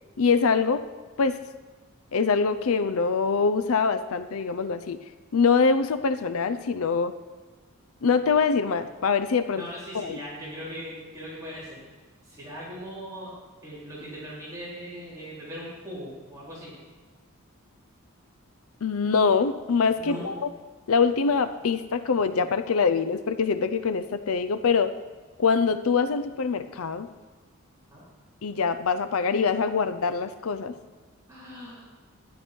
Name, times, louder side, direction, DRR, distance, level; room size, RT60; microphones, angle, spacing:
voice 1, 0.2-0.9 1.2-1.4 2.1-5.0 5.3-7.1 8.0-9.6 9.9-10.2 18.8-20.3 20.9-24.9 25.4-27.1 28.4-30.7, left 5 dB, 80° left, 11 dB, 0.5 m, -24 dB
voice 2, 9.5-11.8 12.2-13.3 13.6-16.7 20.0-20.3 27.9-28.0 31.3-31.8, equal, 15° right, -8 dB, 3.6 m, -39 dB
12.5 x 10.5 x 4.5 m, 1.4 s
head